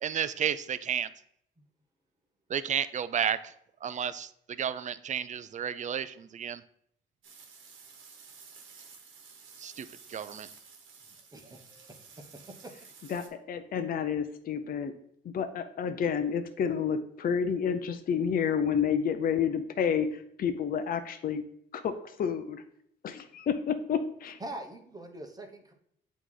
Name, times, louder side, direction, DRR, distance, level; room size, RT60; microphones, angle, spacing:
voice 1, 0.0-1.1 2.5-3.5 3.8-6.6 9.6-10.5, right 8 dB, 40° right, 15 dB, 0.4 m, -32 dB
sound 1, 7.2-13.3, right 5 dB, 75° right, 1.1 m, -52 dB
voice 2, 11.3-12.1 12.5-12.7 24.4-25.7, right 1 dB, 20° right, 4 dB, 1.1 m, -43 dB
voice 3, 13.1-14.9 15.2-21.4 21.7-21.9 22.2-22.6 23.0-24.4, left 7 dB, 45° left, 8 dB, 0.5 m, -30 dB
8.0 x 3.1 x 3.9 m, 0.69 s
cardioid pair, 90°, 20 cm